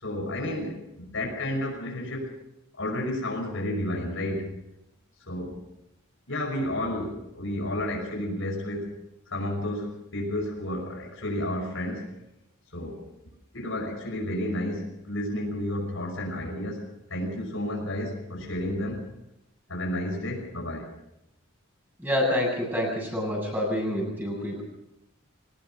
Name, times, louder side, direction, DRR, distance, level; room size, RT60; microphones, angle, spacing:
voice 1, 0.0-2.4 2.8-4.5 5.3-5.6 6.3-9.0 9.3-12.1 12.7-13.0 13.5-19.1 19.7-20.9, left 1 dB, 70° left, 2 dB, 5.7 m, -31 dB
voice 2, 22.0-24.6, left 1 dB, 10° right, -1 dB, 7.4 m, -27 dB
23.0 x 20.0 x 5.6 m, 0.86 s
head